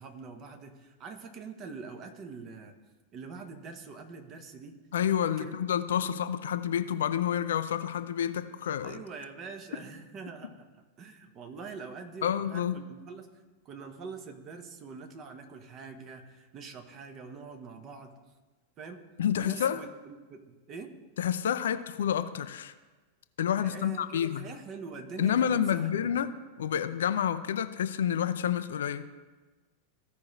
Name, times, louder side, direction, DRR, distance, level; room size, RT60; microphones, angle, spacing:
voice 1, 0.0-2.7 3.1-4.8 5.4-5.6 6.0-6.1 8.8-13.3 13.6-18.1 18.8-19.0 19.3-20.9 23.6-26.2, right 4 dB, 35° right, 5 dB, 1.2 m, -44 dB
voice 2, 4.9-9.0 12.2-12.8 19.2-19.8 21.2-22.7 23.4-24.5 25.2-26.3 26.6-29.0, left 9 dB, 60° left, 12 dB, 0.4 m, -29 dB
15.5 x 5.2 x 3.2 m, 1.3 s
figure-of-eight pair, 90°, 0 cm